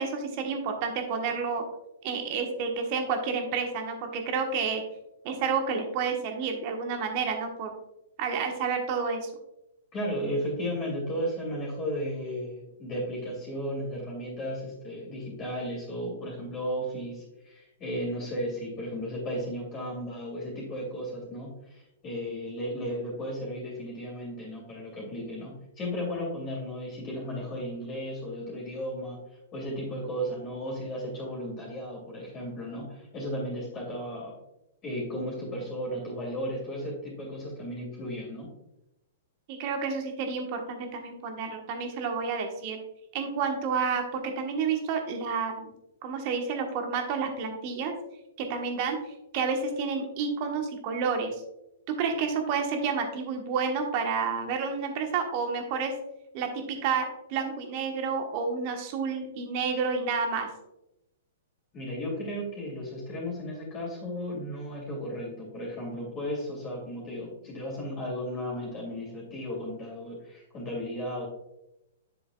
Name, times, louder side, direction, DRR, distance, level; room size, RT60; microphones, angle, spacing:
voice 1, 0.0-1.6 2.0-4.8 5.2-7.7 8.2-9.3 39.5-42.8 43.1-45.7 46.0-47.9 48.4-49.0 49.3-51.3 52.0-55.9 56.3-57.0 57.3-60.5, right 5 dB, 40° right, 4 dB, 1.4 m, -30 dB
voice 2, 9.9-29.2 29.5-34.4 34.8-38.5 61.7-71.3, equal, 25° left, -3 dB, 2.7 m, -34 dB
7.5 x 7.1 x 2.4 m, 0.87 s
figure-of-eight pair, 115°, 0 cm